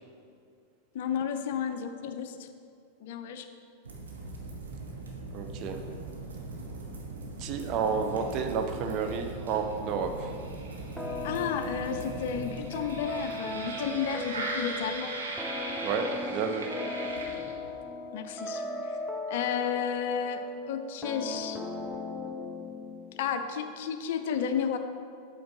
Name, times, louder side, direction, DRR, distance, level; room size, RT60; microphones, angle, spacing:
voice 1, 0.9-2.5 3.0-3.5 11.2-15.1 18.1-19.0 19.3-20.4 20.7-21.6 23.2-24.8, left 7 dB, 55° left, 8 dB, 0.4 m, -32 dB
sound 1, 3.9-17.8, right 2 dB, 70° right, 1.0 m, -39 dB
voice 2, 5.3-5.8 7.4-10.3 15.8-16.7, right 5 dB, 40° right, 5 dB, 0.6 m, -31 dB
sound 2, 11.0-23.4, left 2 dB, ahead, 0.5 m, -37 dB
7.7 x 4.5 x 3.9 m, 2.4 s
figure-of-eight pair, 90°, 0 cm